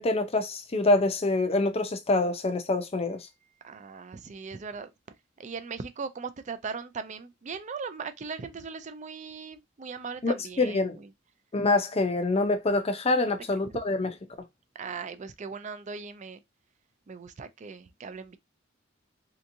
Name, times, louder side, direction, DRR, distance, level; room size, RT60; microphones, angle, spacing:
voice 1, 0.0-3.3 10.2-11.0 11.5-14.1, left 2 dB, 30° left, 0.6 m, -26 dB
voice 2, 3.6-4.9 5.4-11.1 13.7-13.8 14.7-16.4 17.1-18.4, right 5 dB, 40° right, 0.4 m, -39 dB
3.4 x 2.8 x 2.6 m
head